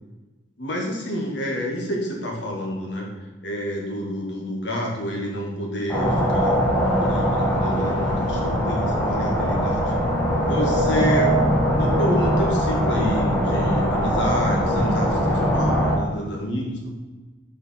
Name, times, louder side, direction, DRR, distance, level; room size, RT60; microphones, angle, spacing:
voice 1, 0.6-3.1 3.4-6.5 7.0-9.9 10.4-11.3 11.7-17.0, equal, 70° left, -1 dB, 2.2 m, -29 dB
sound 1, 5.9-16.0, equal, 5° left, 1.8 m, -21 dB
7.0 x 5.6 x 6.0 m, 1.2 s
head